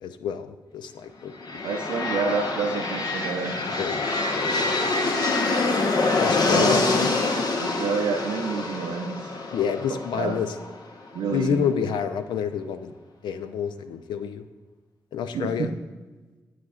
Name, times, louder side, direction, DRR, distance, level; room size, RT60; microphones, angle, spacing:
voice 1, 0.0-2.0 3.8-4.9 6.2-7.1 9.5-10.5 11.3-12.9 13.2-14.5 15.1-15.7, left 7 dB, 85° left, 10 dB, 0.4 m, -29 dB
sound 1, 1.3-11.2, left 3 dB, 60° left, 0.9 m, -26 dB
voice 2, 1.6-3.6 6.5-7.0 7.6-9.3 9.9-10.4 11.1-11.6 15.3-15.7, right 5 dB, 85° right, 1 dB, 0.5 m, -28 dB
9.3 x 7.5 x 2.4 m, 1.3 s
supercardioid pair, 50°, 8 cm